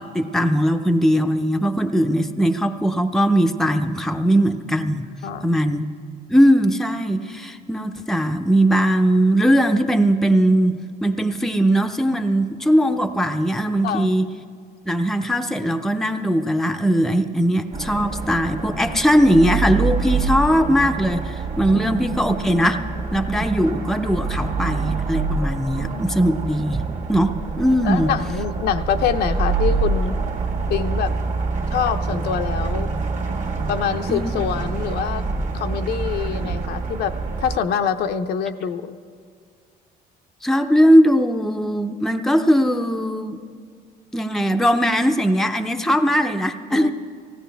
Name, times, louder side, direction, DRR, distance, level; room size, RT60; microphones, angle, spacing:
voice 1, 0.0-5.1 5.4-5.9 6.3-14.3 14.9-22.8 23.1-26.8 27.1-28.1 34.1-34.4 40.4-43.4 44.1-46.9, equal, ahead, 6 dB, 0.6 m, -19 dB
voice 2, 5.2-5.6 13.8-14.1 21.7-21.9 24.6-25.0 27.8-30.2 30.7-31.1 31.7-32.9 33.7-35.2 35.5-39.0 46.7-46.9, left 7 dB, 70° left, 8 dB, 0.6 m, -25 dB
sound 1, 17.7-37.6, right 4 dB, 50° right, 1.5 m, -26 dB
18.5 x 16.0 x 3.4 m, 2.1 s
cardioid pair, 110°, 17 cm